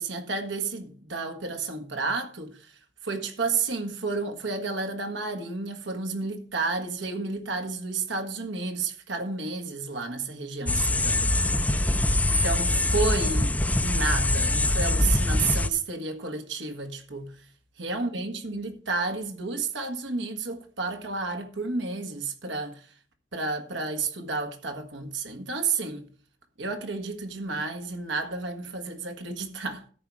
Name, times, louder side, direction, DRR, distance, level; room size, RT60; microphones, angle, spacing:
voice 1, 0.0-2.7 3.0-11.3 12.3-17.3 17.8-22.9 23.3-26.1 26.6-29.8, right 4 dB, 85° right, 1.7 m, -31 dB
sound 1, 10.7-15.7, left 1 dB, 10° left, 0.5 m, -23 dB
13.5 x 4.8 x 7.2 m
head